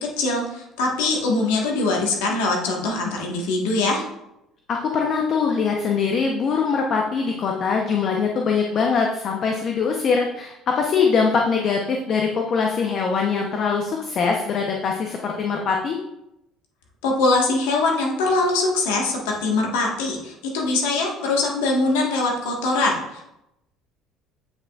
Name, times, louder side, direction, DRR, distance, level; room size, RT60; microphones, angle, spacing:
voice 1, 0.2-4.0 17.0-23.2, left 3 dB, 90° left, -1 dB, 1.4 m, -22 dB
voice 2, 4.7-16.0, left 5 dB, 50° left, 1 dB, 0.8 m, -22 dB
8.6 x 5.0 x 2.4 m, 0.87 s
supercardioid pair, 85°, 0 cm